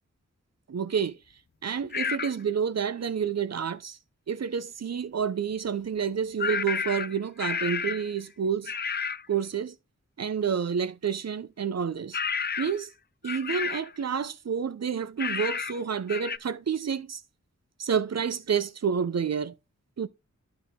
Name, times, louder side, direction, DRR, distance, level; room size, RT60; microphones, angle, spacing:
voice 1, 0.7-1.2 1.6-4.0 4.3-8.7 9.3-9.7 10.2-12.2 12.6-12.9 13.2-17.2 17.8-19.5 20.0-20.1, right 7 dB, 55° right, 0.6 m, -29 dB
sound 1, 1.9-2.3 6.4-8.1 8.6-9.2 12.1-12.8 13.2-13.9 15.2-15.8 16.1-16.4, left 6 dB, 35° left, 0.4 m, -31 dB
11.5 x 4.0 x 3.6 m
wide cardioid pair, 60°, 31 cm